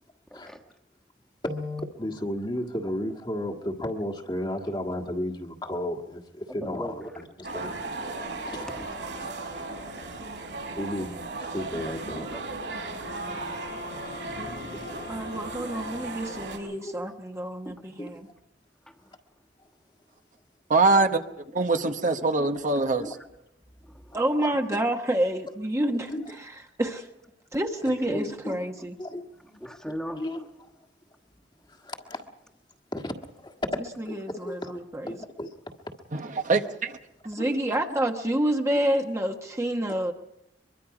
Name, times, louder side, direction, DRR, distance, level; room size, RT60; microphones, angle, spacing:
voice 1, 0.3-0.6 6.6-6.9 8.2-8.3 8.7-8.9 9.8-9.9 12.3-12.4 14.1-15.1 17.6-17.8 18.9-19.0 21.7-21.8 23.8-24.2 28.1-28.2 28.8-28.9 29.6-30.2, equal, 5° left, 4 dB, 1.5 m, -39 dB
voice 2, 1.4-7.8 8.5-8.7 9.2-9.6 10.1-12.4 14.6-15.3 16.7-17.1 18.0-18.2 21.0-21.1 21.8-21.9 22.4-22.5 23.0-23.1 24.1-24.5 26.1-26.3 28.4-28.6 29.0-29.6 30.1-30.7 31.7-32.3 32.9-33.1 33.4-33.7 34.1-34.8 35.1-35.5 37.4-37.6 37.9-38.0 38.7-38.9, left 1 dB, 25° left, 4 dB, 1.6 m, -34 dB
sound 1, 7.4-16.6, right 3 dB, 75° right, 4.5 m, -36 dB
sound 2, 13.0-16.9, left 4 dB, 70° left, 3.1 m, -44 dB
voice 3, 15.1-18.3 24.1-26.5 26.8-27.1 27.5-28.9 34.0-35.2 37.2-40.1, right 1 dB, 15° right, 3 dB, 1.2 m, -28 dB
voice 4, 20.7-21.2 21.5-23.1 36.1-37.0, right 3 dB, 45° right, 6 dB, 1.0 m, -23 dB
23.0 x 23.0 x 4.9 m, 0.86 s
head